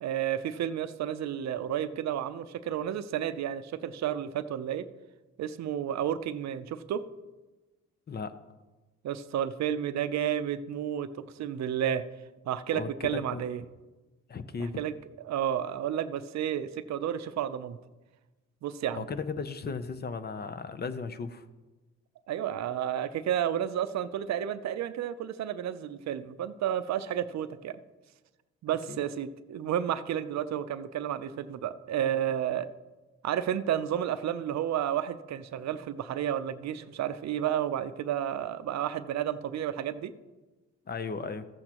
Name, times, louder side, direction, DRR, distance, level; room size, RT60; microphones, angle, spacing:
voice 1, 0.0-4.9 5.4-7.0 9.0-12.0 12.5-13.6 14.8-14.9 15.2-17.8 18.6-19.1 22.3-27.8 28.6-32.7 33.2-40.1, right 10 dB, 65° right, 13 dB, 0.6 m, -31 dB
voice 2, 12.7-13.5 14.3-14.8 18.9-21.5 28.9-29.0 40.9-41.4, left 5 dB, 35° left, 12 dB, 0.6 m, -36 dB
14.5 x 8.0 x 3.0 m, 1.2 s
cardioid pair, 90°, 30 cm